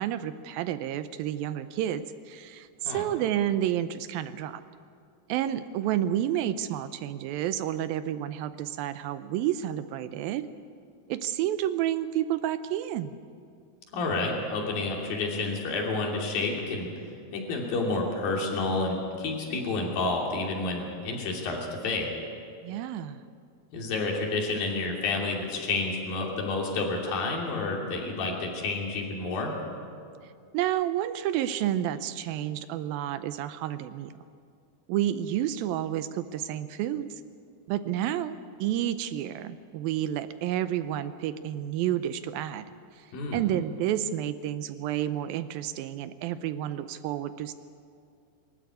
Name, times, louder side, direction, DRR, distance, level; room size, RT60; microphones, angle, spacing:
voice 1, 0.0-4.6 5.3-10.5 11.1-13.2 22.6-23.2 30.5-34.1 34.9-37.1 37.7-42.7 43.0-43.1 43.3-47.5, right 11 dB, 80° right, 12 dB, 2.3 m, -30 dB
voice 2, 13.9-16.9 17.3-22.1 23.7-29.5 43.1-43.4, left 3 dB, 70° left, -1 dB, 4.6 m, -30 dB
23.5 x 13.5 x 9.4 m, 2.3 s
omnidirectional pair, 4.4 m